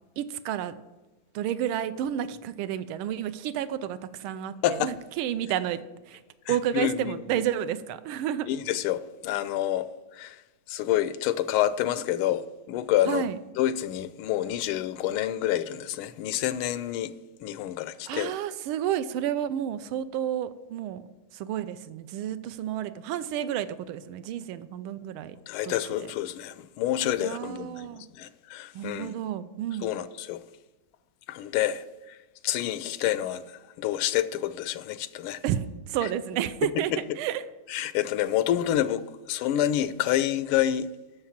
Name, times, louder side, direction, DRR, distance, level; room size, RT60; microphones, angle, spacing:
voice 1, 0.2-0.7 1.3-5.8 6.1-6.2 6.5-8.5 13.1-13.4 18.1-21.0 21.3-25.4 25.6-26.1 27.2-28.0 28.7-29.9 35.4-37.4, right 10 dB, 85° right, 1.4 m, -31 dB
voice 2, 6.5-7.2 8.5-10.4 10.7-13.2 13.6-17.1 17.4-18.3 25.5-29.1 29.8-30.4 31.3-32.2 32.4-35.4 36.6-36.7 37.7-40.9, left 12 dB, 90° left, 1.4 m, -28 dB
7.2 x 6.6 x 7.2 m
omnidirectional pair, 2.3 m